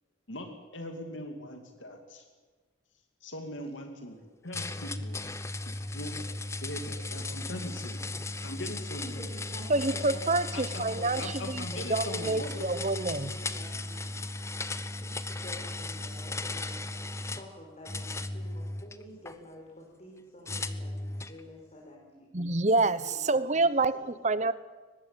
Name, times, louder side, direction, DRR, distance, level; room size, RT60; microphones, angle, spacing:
voice 1, 0.3-2.3 3.2-5.2 5.7-6.2 6.6-8.0 8.4-9.2 10.5-10.9 11.2-12.7, left 1 dB, 70° left, 4 dB, 2.7 m, -41 dB
sound 1, 4.5-17.5 17.9-19.4 20.5-21.4, left 2 dB, 15° left, 1.0 m, -36 dB
voice 2, 8.8-10.4 10.7-11.3 11.7-14.2 14.8-16.9 17.2-22.3 22.8-23.2 23.5-23.7 23.9-24.1, left 1 dB, 35° left, -1 dB, 4.7 m, -48 dB
voice 3, 9.7-11.6 11.9-13.3 22.3-24.5, right 2 dB, 35° right, 16 dB, 1.0 m, -27 dB
22.5 x 21.0 x 9.1 m, 1.4 s
head